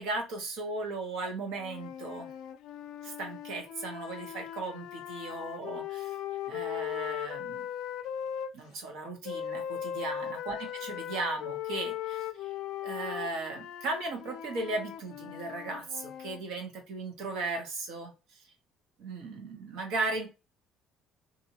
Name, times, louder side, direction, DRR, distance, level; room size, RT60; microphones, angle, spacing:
voice 1, 0.0-2.3 3.0-6.1 6.5-7.7 8.5-12.5 12.8-18.1 19.0-20.3, right 3 dB, 80° right, 4 dB, 1.1 m, -36 dB
sound 1, 1.6-8.5 9.2-16.4, left 10 dB, 70° left, 0.4 m, -38 dB
2.8 x 2.6 x 2.8 m, 0.29 s
cardioid pair, 130°, 0 cm